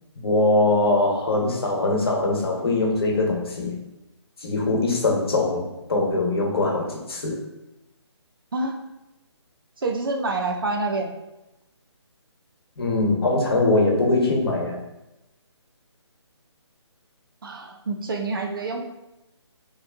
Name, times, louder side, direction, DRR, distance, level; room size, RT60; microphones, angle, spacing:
voice 1, 0.2-3.8 4.4-7.4 12.8-14.8, left 2 dB, 55° left, -1 dB, 1.1 m, -22 dB
voice 2, 9.8-11.1 17.4-18.8, right 3 dB, 50° right, 3 dB, 0.5 m, -27 dB
4.2 x 3.0 x 2.5 m, 0.95 s
figure-of-eight pair, 145°, 15 cm